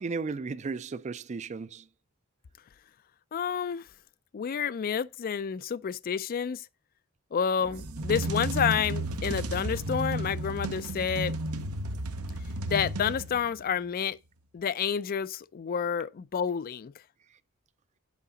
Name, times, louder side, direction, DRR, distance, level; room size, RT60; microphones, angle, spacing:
voice 1, 0.0-1.9 7.9-8.1, right 4 dB, 30° right, 0.4 m, -35 dB
voice 2, 3.3-3.9 4.3-6.6 7.3-11.4 12.7-14.2 14.5-16.9, left 7 dB, 40° left, 0.3 m, -29 dB
sound 1, 7.7-13.6, right 1 dB, 85° right, 0.9 m, -33 dB
8.4 x 4.8 x 3.8 m
head